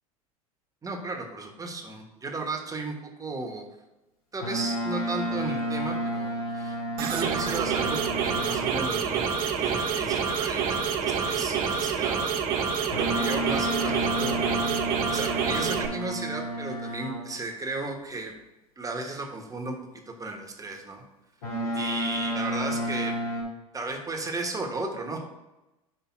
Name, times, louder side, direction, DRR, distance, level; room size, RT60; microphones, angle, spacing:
voice 1, 0.8-3.7 4.3-18.3 18.8-19.8 20.1-21.0 21.7-23.1 23.7-25.2, right 3 dB, 20° right, 2 dB, 1.2 m, -35 dB
Boat Water vehicle, 4.4-8.9 12.9-17.4 21.4-23.4, right 1 dB, 80° left, 2.2 m, -31 dB
sound 1, 7.0-15.9, right 6 dB, 50° right, 0.9 m, -27 dB
6.0 x 3.3 x 5.8 m, 0.98 s
hypercardioid pair, 80°, 19 cm